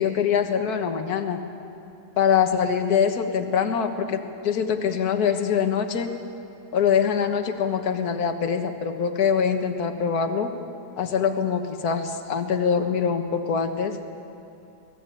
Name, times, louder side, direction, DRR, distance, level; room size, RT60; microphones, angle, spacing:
voice 1, 0.0-1.4 2.2-6.2 6.7-10.5 11.0-14.0, left 7 dB, 60° left, 6 dB, 1.8 m, -24 dB
24.5 x 18.0 x 9.1 m, 2.7 s
omnidirectional pair, 1.9 m